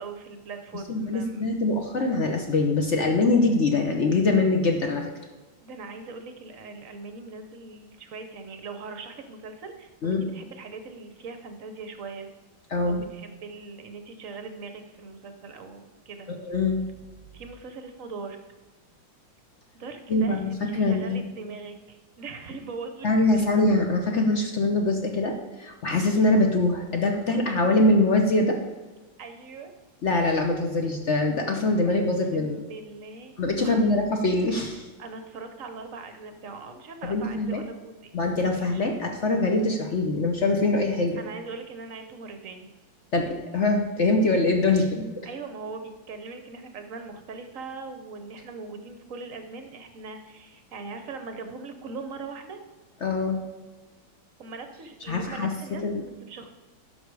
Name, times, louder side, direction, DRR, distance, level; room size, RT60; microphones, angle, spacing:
voice 1, 0.0-1.4 5.6-12.3 12.9-16.3 17.3-18.4 19.7-23.5 29.2-29.7 32.3-34.0 35.0-38.1 38.6-38.8 41.2-42.7 45.2-52.6 54.4-56.6, right 4 dB, 55° right, 7 dB, 1.0 m, -40 dB
voice 2, 0.9-5.0 10.0-10.3 12.7-13.0 16.3-16.8 20.1-20.5 20.8-21.3 23.0-28.6 30.0-32.6 33.4-34.9 37.0-37.6 38.1-41.2 43.1-45.0 53.0-53.4 55.1-55.5 55.8-56.0, left 2 dB, 55° left, 3 dB, 0.8 m, -23 dB
11.0 x 6.2 x 4.7 m, 1.2 s
omnidirectional pair, 2.2 m